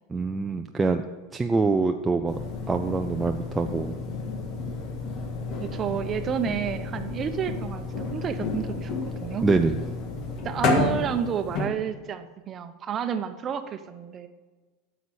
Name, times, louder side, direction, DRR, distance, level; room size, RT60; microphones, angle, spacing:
voice 1, 0.1-1.0 1.3-2.4 2.7-3.9 9.4-9.8, right 3 dB, 15° right, 5 dB, 0.5 m, -24 dB
sound 1, 2.3-11.7, left 3 dB, 50° left, 1.8 m, -31 dB
voice 2, 5.6-8.9 9.2-9.4 10.4-14.3, right 8 dB, 35° right, 9 dB, 0.9 m, -30 dB
9.5 x 6.9 x 6.4 m, 1.3 s
hypercardioid pair, 100°, 0 cm